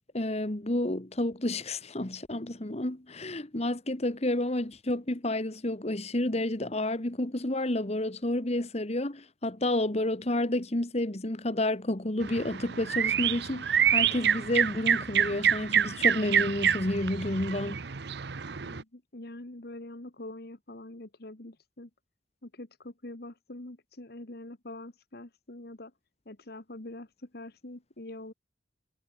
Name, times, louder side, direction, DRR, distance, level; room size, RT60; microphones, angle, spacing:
voice 1, 0.1-17.8, left 1 dB, 35° left, 1.6 m, -30 dB
sound 1, 12.2-18.8, right 8 dB, 65° right, 0.8 m, -27 dB
voice 2, 18.6-21.9 22.4-25.9 26.2-28.3, left 1 dB, 55° left, 1.7 m, -44 dB
head